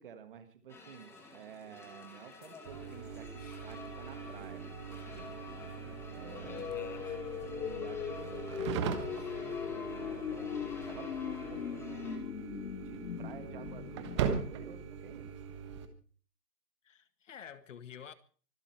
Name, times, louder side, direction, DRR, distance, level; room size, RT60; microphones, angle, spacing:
voice 1, 0.0-5.4 6.1-6.7 7.4-12.3 12.8-15.3, right 8 dB, 35° right, 1.7 m, -52 dB
sound 1, 0.7-12.2, left 3 dB, 5° left, 1.9 m, -50 dB
sound 2, 2.7-15.9, right 7 dB, 20° right, 1.3 m, -41 dB
sound 3, 6.2-15.2, left 9 dB, 75° left, 1.0 m, -40 dB
voice 2, 6.4-7.2 9.2-9.3 16.8-18.1, left 8 dB, 50° left, 1.8 m, -50 dB
24.5 x 12.5 x 4.6 m
hypercardioid pair, 165°, 48 cm